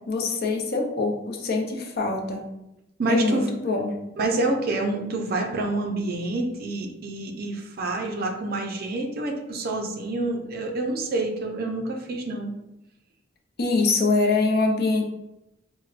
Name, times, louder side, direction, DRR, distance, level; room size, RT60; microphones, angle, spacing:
voice 1, 0.1-2.4 3.1-4.0 13.6-15.1, left 3 dB, 55° left, 2 dB, 0.6 m, -24 dB
voice 2, 3.0-3.5 4.2-12.5, right 2 dB, 50° right, 2 dB, 0.5 m, -27 dB
4.6 x 2.1 x 2.4 m, 0.89 s
head